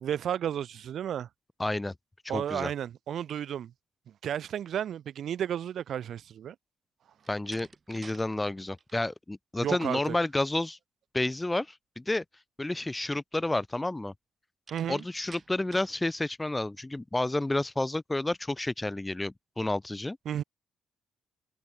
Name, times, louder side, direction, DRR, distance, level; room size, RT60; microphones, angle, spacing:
voice 1, 0.0-1.3 2.3-3.7 4.2-6.5 9.6-10.2 14.7-15.0 20.3-20.4, right 9 dB, 65° right, 0.6 m, -32 dB
voice 2, 1.6-1.9 2.2-2.7 7.3-10.8 11.1-12.2 12.6-14.1 14.9-20.2, left 2 dB, 15° left, 0.4 m, -30 dB
Slam, 7.2-8.3 8.6-9.0 14.7-16.0, right 5 dB, 40° right, 0.8 m, -51 dB
cardioid pair, 90°, 0 cm